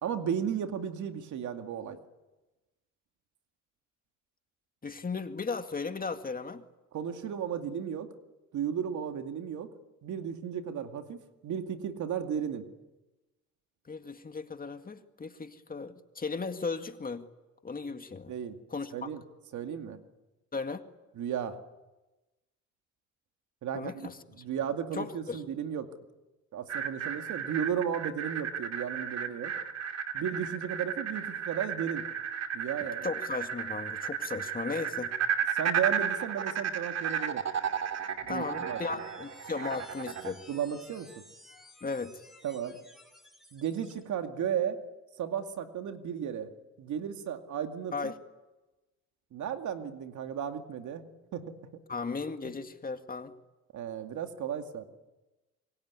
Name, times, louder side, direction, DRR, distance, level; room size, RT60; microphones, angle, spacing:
voice 1, 0.0-2.0 6.9-8.1 8.5-9.7 10.0-12.6 18.3-18.6 18.9-19.2 19.5-20.0 21.2-21.6 23.6-25.9 26.5-29.5 30.1-32.0 32.5-33.1 35.5-37.4 38.2-38.8 40.5-41.1 42.4-42.8 43.5-44.8 45.2-46.5 46.8-48.1 49.3-51.0 51.3-51.5 52.4-52.5 53.7-54.8, right 8 dB, 75° right, 6 dB, 2.3 m, -34 dB
voice 2, 4.8-6.6 13.9-17.3 17.6-18.3 18.7-19.1 20.5-20.8 23.7-24.2 24.9-25.4 33.0-35.1 38.3-40.4 41.8-42.2 47.9-48.1 51.9-53.3, left 4 dB, 30° left, 7 dB, 2.0 m, -36 dB
sound 1, 26.7-40.3, right 7 dB, 60° right, 2.6 m, -34 dB
sound 2, 38.1-44.0, left 1 dB, ahead, 6.7 m, -54 dB
26.0 x 23.5 x 9.7 m, 1.1 s
cardioid pair, 90°, 30 cm